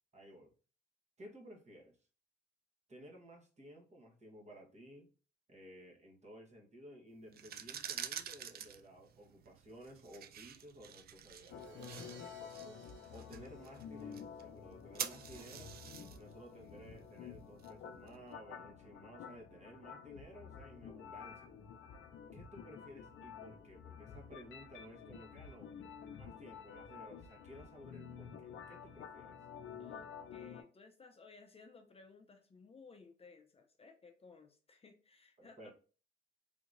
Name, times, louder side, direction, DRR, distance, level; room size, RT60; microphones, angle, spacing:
voice 1, 0.1-0.5 1.2-1.9 2.9-5.1 5.5-12.3 13.1-15.7 16.1-21.6 22.3-25.7 26.2-29.4 35.4-35.7, equal, 35° right, 1 dB, 1.2 m, -55 dB
sound 1, 7.3-18.1, right 9 dB, 50° right, 0.4 m, -48 dB
Crash cymbal, 11.4-14.4, right 5 dB, 75° right, 0.7 m, -60 dB
sound 2, 11.5-30.6, left 7 dB, 75° left, 0.5 m, -51 dB
voice 2, 29.8-35.7, left 4 dB, 30° left, 4 dB, 0.6 m, -58 dB
3.5 x 2.8 x 2.5 m, 0.36 s
cardioid pair, 90°, 20 cm